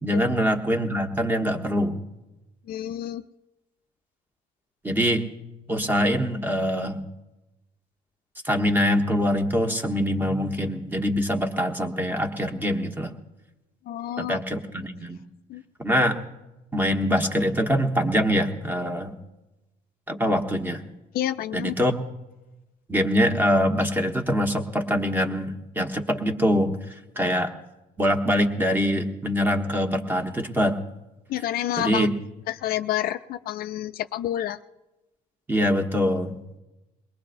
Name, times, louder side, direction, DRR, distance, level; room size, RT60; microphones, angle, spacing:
voice 1, 0.0-2.0 4.8-5.2 5.7-7.1 8.4-13.2 14.2-15.2 15.8-16.2 16.7-19.2 20.1-20.8 21.5-22.0 22.9-26.8 27.2-27.5 28.0-30.8 31.8-32.1 35.5-36.6, equal, 10° right, 4 dB, 1.2 m, -24 dB
voice 2, 2.7-3.2 13.9-14.4 15.5-15.6 21.1-21.7 31.3-32.1 32.5-34.6, left 12 dB, 60° left, 11 dB, 0.4 m, -29 dB
22.0 x 19.0 x 2.6 m, 1.0 s
cardioid pair, 110°, 17 cm